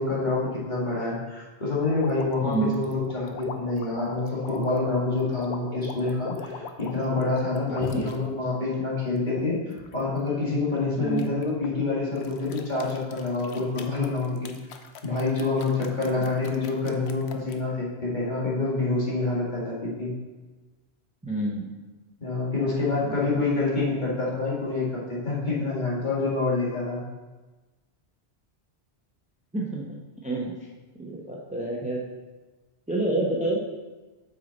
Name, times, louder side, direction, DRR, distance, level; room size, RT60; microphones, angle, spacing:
voice 1, 0.0-9.6 9.9-14.5 15.0-20.1 22.2-27.0, left 3 dB, 45° left, -6 dB, 2.2 m, -27 dB
sound 1, 1.9-8.2 8.7-10.0 11.2-11.7 12.2-17.6, left 6 dB, 75° left, 0.9 m, -40 dB
voice 2, 2.4-2.7 7.7-8.1 11.0-11.3 16.1-16.3 21.2-21.7 23.0-23.3 29.5-29.8 30.2-30.5 31.0-32.0 32.9-33.6, right 2 dB, 5° right, -3 dB, 0.8 m, -28 dB
8.3 x 5.6 x 4.1 m, 1.2 s
omnidirectional pair, 1.1 m